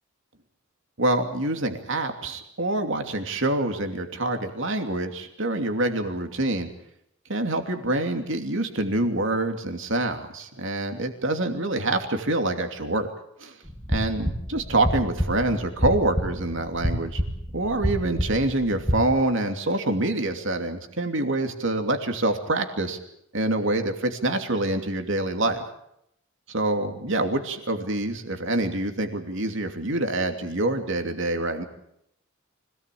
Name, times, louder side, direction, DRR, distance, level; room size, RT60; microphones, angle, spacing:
voice 1, 1.0-6.7 7.3-13.1 13.4-13.5 13.9-17.2 17.5-23.0 23.3-25.6 26.5-31.6, right 2 dB, 65° right, 5 dB, 2.8 m, -26 dB
sound 1, 13.7-19.0, equal, 5° left, 2.6 m, -28 dB
25.0 x 18.5 x 8.5 m, 0.77 s
head